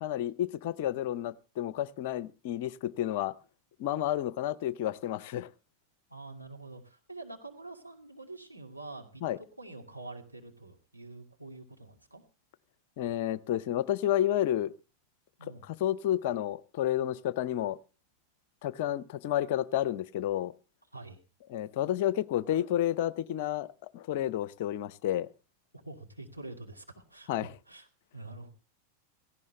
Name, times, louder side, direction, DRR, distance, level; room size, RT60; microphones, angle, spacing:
voice 1, 0.0-3.3 3.8-5.5 9.2-9.4 13.0-14.7 15.7-17.8 18.6-20.5 21.5-23.7 23.9-25.3 27.3-27.5, left 12 dB, 50° left, 0.7 m, -30 dB
voice 2, 6.1-12.2 15.4-15.7 20.9-21.2 25.8-27.9 28.1-28.5, right 2 dB, 90° right, 2.4 m, -46 dB
17.5 x 15.5 x 3.2 m
figure-of-eight pair, 90°, 0 cm